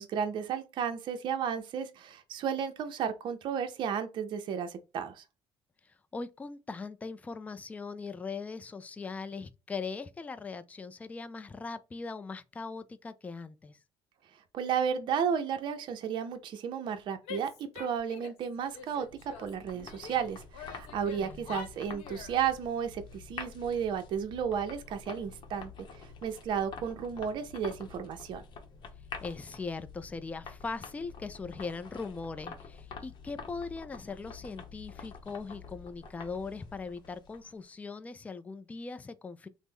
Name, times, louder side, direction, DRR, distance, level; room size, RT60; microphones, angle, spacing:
voice 1, 0.0-5.2 14.5-19.1 19.4-28.4, right 7 dB, 55° right, 0.5 m, -33 dB
voice 2, 5.8-13.8 21.2-21.6 29.2-39.5, left 4 dB, 15° left, 0.3 m, -40 dB
Female speech woman speaking / Yell, 17.2-18.5 18.7-20.2 20.5-22.4, left 6 dB, 85° left, 1.0 m, -45 dB
sound 1, 18.6-37.6, left 5 dB, 50° left, 0.8 m, -48 dB
3.1 x 2.0 x 3.5 m
cardioid pair, 110°, 10 cm